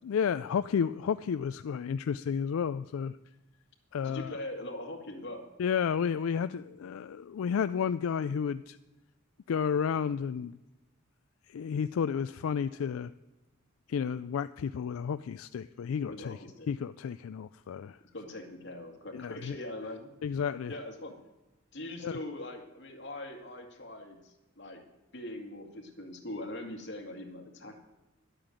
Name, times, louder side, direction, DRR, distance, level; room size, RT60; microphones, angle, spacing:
voice 1, 0.0-3.2 3.9-4.4 5.6-8.8 9.5-10.5 11.5-13.1 13.9-16.4 16.7-18.0 19.1-19.6 20.2-20.7 22.0-22.2, left 7 dB, 85° left, 13 dB, 0.3 m, -31 dB
voice 2, 4.0-5.4 16.1-16.7 18.1-20.1 20.7-21.2 21.7-24.8 25.1-27.8, left 1 dB, 55° left, 3 dB, 2.1 m, -42 dB
11.5 x 8.7 x 9.1 m, 1.0 s
head